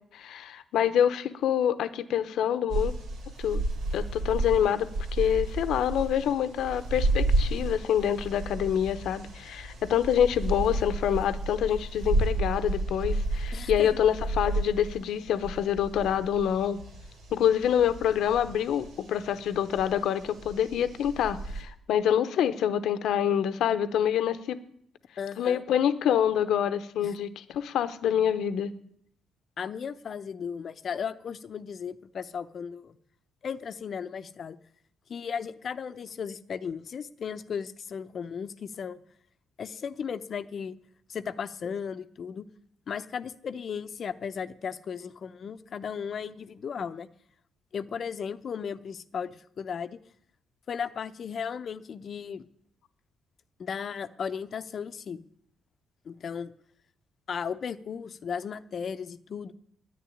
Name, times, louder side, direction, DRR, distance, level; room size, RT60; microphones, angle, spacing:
voice 1, 0.1-2.9 3.4-3.6 3.9-16.8 17.3-24.6 25.4-28.7, left 9 dB, 75° left, 12 dB, 0.9 m, -26 dB
sound 1, 2.7-21.6, right 2 dB, 85° right, 4.1 m, -32 dB
voice 2, 13.5-13.9 25.2-25.6 27.0-27.1 29.6-33.0 33.4-34.6 35.1-39.0 39.6-40.8 41.1-42.5 42.9-47.1 47.7-50.0 50.7-52.4 53.6-55.2 56.1-56.5 57.3-59.5, left 7 dB, 50° left, 12 dB, 0.7 m, -35 dB
10.0 x 9.7 x 9.9 m, 0.70 s
cardioid pair, 90°, 0 cm